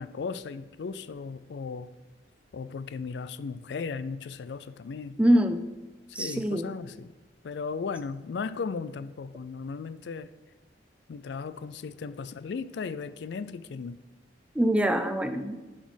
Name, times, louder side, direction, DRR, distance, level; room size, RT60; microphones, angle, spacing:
voice 1, 0.0-1.9 2.5-5.2 6.1-7.1 7.4-10.3 11.1-14.0, left 5 dB, 65° left, 13 dB, 0.4 m, -36 dB
voice 2, 5.2-5.6 6.1-6.7 14.5-15.6, equal, 5° right, 8 dB, 0.4 m, -24 dB
11.5 x 4.2 x 6.3 m, 1.2 s
head